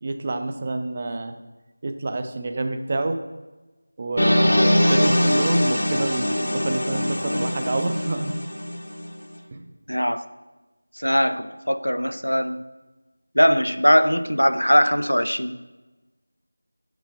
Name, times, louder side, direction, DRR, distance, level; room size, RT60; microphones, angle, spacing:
voice 1, 0.0-1.3 1.8-3.2 4.0-8.3 9.5-9.7, right 2 dB, 25° right, 7 dB, 0.5 m, -27 dB
sound 1, 4.2-9.1, left 1 dB, 70° left, 1.3 m, -22 dB
voice 2, 9.9-10.2 11.0-12.6 13.4-15.6, equal, 90° left, 12 dB, 0.5 m, -20 dB
6.3 x 6.0 x 4.7 m, 1.2 s
figure-of-eight pair, 170°, 0 cm